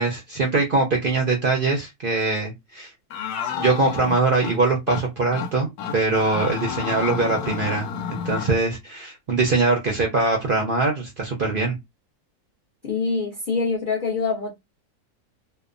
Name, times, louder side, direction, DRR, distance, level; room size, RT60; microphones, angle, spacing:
voice 1, 0.0-2.9 3.6-11.8, right 3 dB, 65° right, 0.5 m, -22 dB
sound 1, 3.1-4.6 4.9-5.0 5.3-5.5 5.8-8.6, left 7 dB, 90° left, 1.1 m, -30 dB
voice 2, 12.8-14.5, left 4 dB, 60° left, 0.5 m, -25 dB
2.8 x 2.1 x 2.4 m
omnidirectional pair, 1.6 m